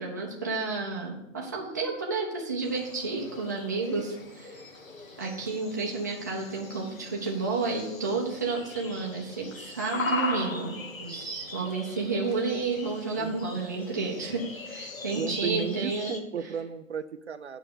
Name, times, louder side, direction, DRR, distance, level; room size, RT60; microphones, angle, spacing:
voice 1, 0.0-4.7 5.2-16.1, right 4 dB, 15° right, -4 dB, 0.6 m, -31 dB
sound 1, 2.6-16.2, left 3 dB, 85° left, 1.6 m, -39 dB
voice 2, 13.2-13.5 15.1-17.6, right 7 dB, 55° right, 10 dB, 0.5 m, -34 dB
7.8 x 5.5 x 6.9 m, 0.87 s
hypercardioid pair, 170°, 40 cm